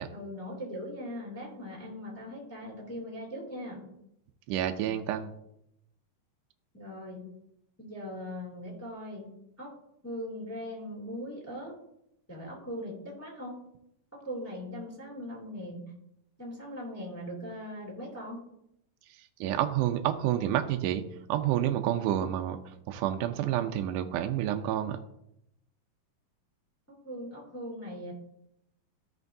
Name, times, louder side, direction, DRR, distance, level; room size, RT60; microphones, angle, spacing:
voice 1, 0.1-3.9 6.7-7.3 7.8-9.3 9.6-9.7 10.0-11.7 12.3-13.6 14.1-15.9 16.4-18.4 27.0-28.1, equal, 5° left, -4 dB, 2.1 m, -40 dB
voice 2, 4.5-5.3 19.1-21.0 21.3-22.6 22.9-25.0, right 11 dB, 80° right, 6 dB, 1.9 m, -29 dB
15.5 x 5.3 x 2.7 m, 0.79 s
omnidirectional pair, 4.0 m